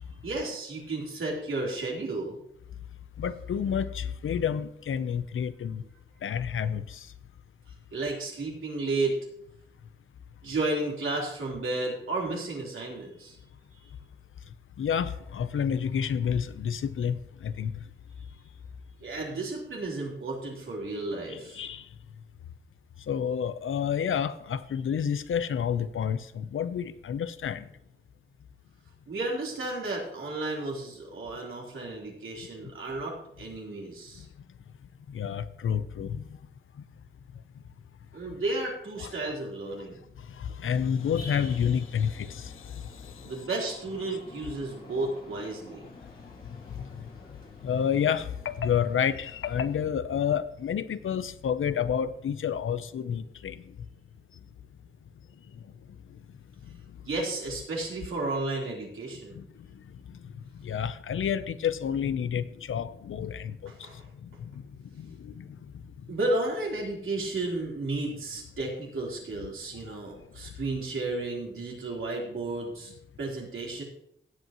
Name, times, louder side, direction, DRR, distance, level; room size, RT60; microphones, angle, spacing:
voice 1, 0.2-2.4 7.9-9.3 10.4-13.4 19.0-21.6 29.1-34.3 38.1-40.0 43.2-45.8 57.1-59.4 63.7-64.1 66.1-73.8, right 2 dB, 75° right, 3.6 m, -33 dB
voice 2, 3.2-5.8 6.2-7.0 14.8-17.7 21.3-21.8 23.1-27.6 35.1-36.2 39.0-39.1 40.6-42.5 47.6-53.6 59.4-59.5 60.6-63.6 64.4-64.5 65.0-65.4, left 8 dB, 80° left, 0.6 m, -29 dB
sound 1, 41.0-49.9, left 2 dB, 45° left, 2.2 m, -50 dB
16.5 x 8.2 x 3.0 m
wide cardioid pair, 110°, 21 cm